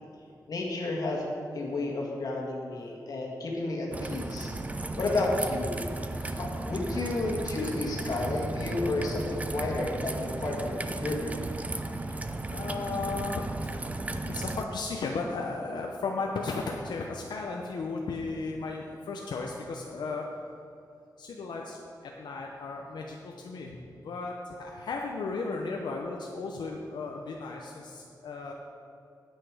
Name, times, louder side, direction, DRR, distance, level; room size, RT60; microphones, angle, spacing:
voice 1, 0.5-1.2 1.5-4.5 5.0-5.8 6.2-11.3, left 2 dB, 60° left, -2 dB, 1.7 m, -31 dB
Raindrop / Trickle dribble, 3.9-14.6, right 2 dB, 20° right, 0.4 m, -35 dB
voice 2, 12.0-13.5 14.2-20.2 21.2-21.8 22.2-23.8 24.0-28.5, left 3 dB, 90° left, 0 dB, 0.8 m, -35 dB
9.2 x 8.3 x 4.9 m, 2.5 s
wide cardioid pair, 165°, 7 cm